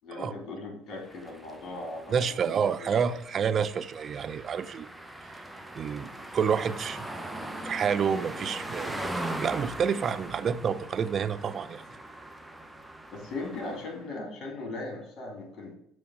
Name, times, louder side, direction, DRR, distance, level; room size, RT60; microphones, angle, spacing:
voice 1, 0.0-2.3 2.8-3.1 13.1-15.7, left 2 dB, 50° left, 2 dB, 2.4 m, -38 dB
sound 1, 1.0-14.0, right 1 dB, 5° right, 0.7 m, -40 dB
voice 2, 2.1-4.9 5.7-7.1 7.6-9.0 9.4-11.8, right 7 dB, 40° right, 14 dB, 0.4 m, -28 dB
7.0 x 3.1 x 6.0 m, 0.73 s
supercardioid pair, 90°, 0 cm